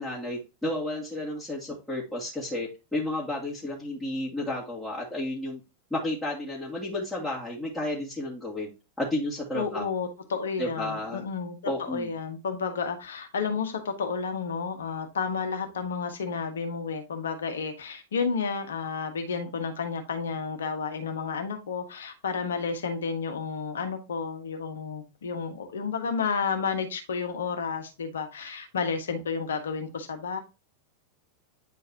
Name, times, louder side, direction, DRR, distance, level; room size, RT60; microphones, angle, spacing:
voice 1, 0.0-5.6 5.9-8.7 9.0-9.9 10.6-11.2 11.7-12.1, left 1 dB, 5° left, -8 dB, 2.5 m, -32 dB
voice 2, 9.5-30.4, left 5 dB, 65° left, 7 dB, 1.5 m, -31 dB
9.5 x 4.6 x 3.0 m, 0.27 s
figure-of-eight pair, 90°, 0 cm